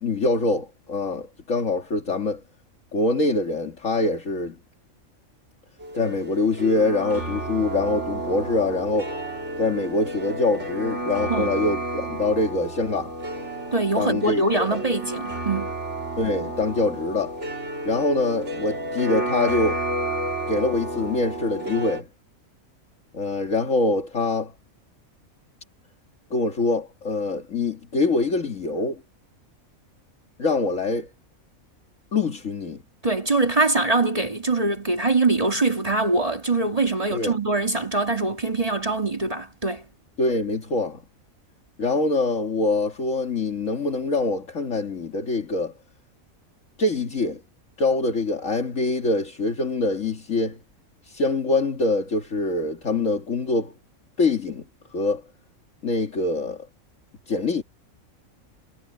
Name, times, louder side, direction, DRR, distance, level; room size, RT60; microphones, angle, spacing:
voice 1, 0.0-2.4 2.9-4.6 5.9-9.1 9.6-13.2 14.0-14.8 16.2-17.4 17.8-19.8 20.5-22.1 23.1-24.5 26.3-29.0 30.4-31.1 32.1-32.8 37.1-37.4 40.2-41.0 41.8-45.7 46.8-47.4 47.8-50.6 51.0-53.7 54.2-54.6 54.9-55.2 55.8-56.7 57.3-57.6, left 3 dB, 65° left, 2.4 m, -24 dB
sound 1, 5.8-22.0, right 1 dB, 55° right, 3.2 m, -31 dB
voice 2, 13.7-15.7 33.0-39.8, right 2 dB, 25° right, 2.2 m, -23 dB
omnidirectional pair, 1.5 m